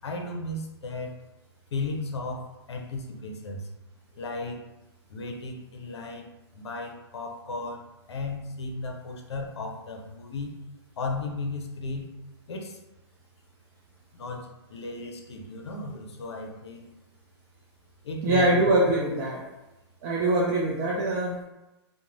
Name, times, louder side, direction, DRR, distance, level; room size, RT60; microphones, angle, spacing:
voice 1, 0.0-1.1 1.7-3.7 4.2-4.6 5.1-10.5 11.0-12.1 12.5-12.8 14.1-16.9 18.0-18.9, left 2 dB, 75° left, 2 dB, 0.6 m, -35 dB
voice 2, 18.2-19.4 20.0-21.4, right 2 dB, 35° right, -4 dB, 0.4 m, -23 dB
2.4 x 2.1 x 3.0 m, 0.99 s
hypercardioid pair, 125°, 14 cm